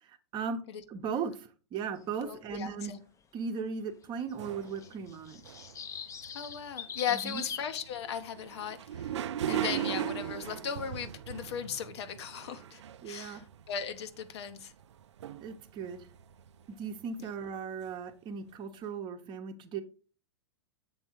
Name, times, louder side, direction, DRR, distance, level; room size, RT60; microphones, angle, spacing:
voice 1, 0.0-0.6 0.9-2.9 3.3-5.4 7.2-7.4 13.0-13.4 15.4-16.1 16.7-19.8, right 6 dB, 30° right, 0.9 m, -37 dB
voice 2, 2.2-3.0 6.3-9.2 9.5-14.7 17.2-17.3, left 8 dB, 70° left, 0.9 m, -37 dB
sound 1, 4.2-7.9, left 7 dB, 20° left, 0.6 m, -42 dB
sound 2, 4.4-7.0 7.3-17.1 17.6-17.7 17.9-18.0, right 10 dB, 80° right, 0.4 m, -39 dB
7.3 x 3.6 x 4.4 m
hypercardioid pair, 120°, 15 cm